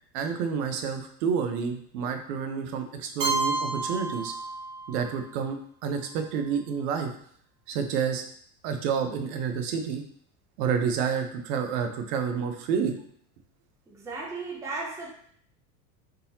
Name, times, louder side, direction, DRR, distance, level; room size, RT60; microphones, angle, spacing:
voice 1, 0.1-4.3 4.9-7.1 7.7-8.2 8.6-10.0 10.6-12.9, right 6 dB, 85° right, 6 dB, 0.7 m, -29 dB
Keyboard (musical), 3.2-5.1, right 3 dB, 30° right, 1.2 m, -30 dB
voice 2, 13.9-15.1, right 3 dB, 5° right, -2 dB, 0.4 m, -35 dB
3.8 x 2.8 x 2.7 m, 0.63 s
supercardioid pair, 130°, 46 cm